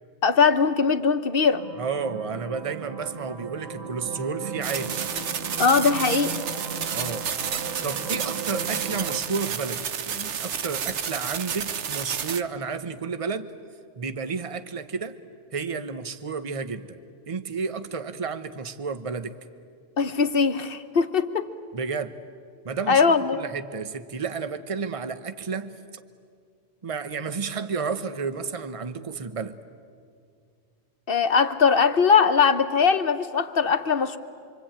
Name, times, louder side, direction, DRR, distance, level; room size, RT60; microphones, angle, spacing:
voice 1, 0.2-1.6 5.6-6.3 20.0-21.5 22.9-23.4 31.1-34.2, left 5 dB, 55° left, 9 dB, 1.2 m, -20 dB
sound 1, 1.4-9.2, right 5 dB, 60° right, 2.1 m, -36 dB
voice 2, 1.8-5.0 6.9-7.3 7.8-13.5 14.0-15.2 15.5-17.0 17.3-19.4 21.7-22.2 22.6-25.7 26.8-29.6, right 5 dB, 30° right, 10 dB, 0.9 m, -31 dB
sound 2, 4.6-12.4, right 8 dB, 85° right, 1.2 m, -31 dB
26.0 x 24.5 x 8.9 m, 2.2 s
omnidirectional pair, 1.2 m